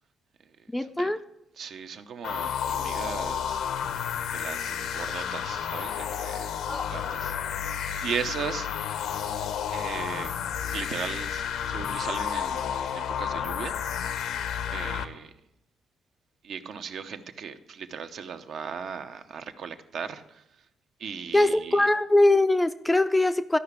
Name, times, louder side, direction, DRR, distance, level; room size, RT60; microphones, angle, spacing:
voice 1, 0.7-1.2 6.7-6.9 21.3-23.6, left 2 dB, 10° left, 0.4 m, -22 dB
voice 2, 1.6-3.6 4.3-6.6 6.9-8.7 9.7-10.3 10.7-13.8 14.7-15.3 16.4-20.4 21.0-21.9, right 6 dB, 60° right, 0.8 m, -37 dB
sound 1, 2.2-15.1, left 8 dB, 80° left, 0.9 m, -31 dB
13.0 x 5.8 x 8.3 m
cardioid pair, 140°, 0 cm